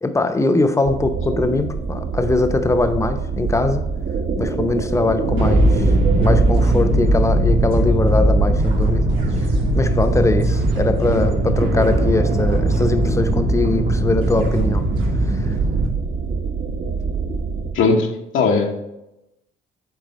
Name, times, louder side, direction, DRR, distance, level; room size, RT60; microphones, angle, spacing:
voice 1, 0.0-3.8 4.4-5.8 6.2-9.5 9.7-14.9 15.2-15.5, left 2 dB, 15° left, 8 dB, 0.7 m, -21 dB
sound 1, 0.9-17.7, right 5 dB, 60° right, 1.0 m, -26 dB
sound 2, 5.2-15.9, right 1 dB, 80° right, 2.1 m, -19 dB
voice 2, 17.7-18.8, left 4 dB, 80° left, 1 dB, 1.0 m, -18 dB
8.3 x 3.4 x 4.1 m, 0.90 s
cardioid pair, 90°, 20 cm